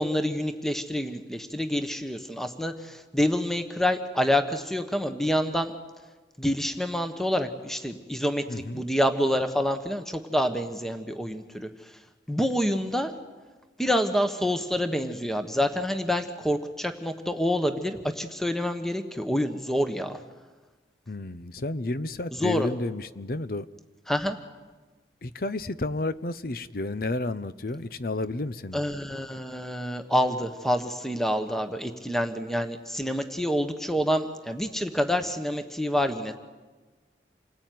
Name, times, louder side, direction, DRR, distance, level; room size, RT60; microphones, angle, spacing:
voice 1, 0.0-5.7 6.4-11.9 12.3-13.1 13.8-20.2 22.3-22.7 24.1-24.4 28.7-36.4, equal, ahead, 7 dB, 1.2 m, -27 dB
voice 2, 8.5-8.8 21.1-23.7 25.2-28.8, left 2 dB, 55° left, 14 dB, 0.8 m, -31 dB
28.0 x 19.5 x 9.4 m, 1.3 s
head